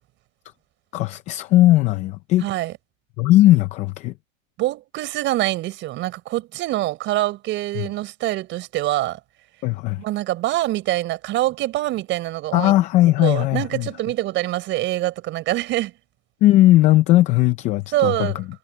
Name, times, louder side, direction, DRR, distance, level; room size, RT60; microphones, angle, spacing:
voice 1, 0.9-2.4 3.2-4.1 7.7-7.9 9.6-10.0 12.5-13.9 16.4-18.4, left 15 dB, 20° left, 0.5 m, -17 dB
voice 2, 2.4-2.7 4.6-9.2 10.0-12.7 13.2-15.9 17.9-18.4, right 16 dB, 30° right, 5.5 m, -25 dB
hypercardioid pair, 150°, 40 cm